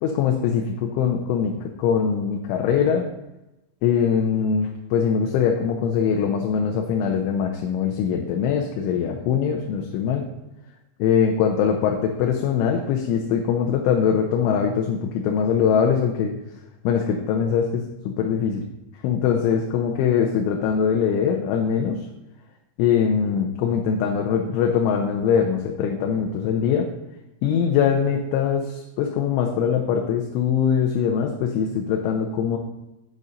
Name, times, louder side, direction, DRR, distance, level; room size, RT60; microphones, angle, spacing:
voice 1, 0.0-3.1 3.8-10.3 11.0-16.3 16.8-18.6 19.0-22.0 22.8-26.9 27.4-32.6, left 7 dB, 85° left, 2 dB, 3.2 m, -22 dB
8.8 x 6.8 x 5.1 m, 0.95 s
omnidirectional pair, 5.5 m